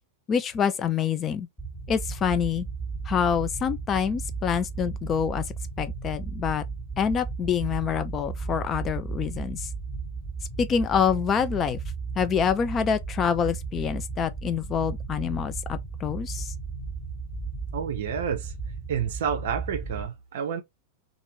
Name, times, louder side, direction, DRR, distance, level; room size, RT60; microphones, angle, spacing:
voice 1, 0.3-1.5 1.9-2.7 3.1-5.4 5.8-6.6 7.0-9.7 10.6-11.8 12.2-16.5, left 7 dB, 25° left, 0.5 m, -26 dB
sound 1, 1.6-20.1, right 4 dB, 5° left, 1.1 m, -35 dB
voice 2, 17.7-18.5 18.9-20.6, right 7 dB, 60° right, 0.5 m, -29 dB
2.6 x 2.6 x 3.0 m
figure-of-eight pair, 90°, 0 cm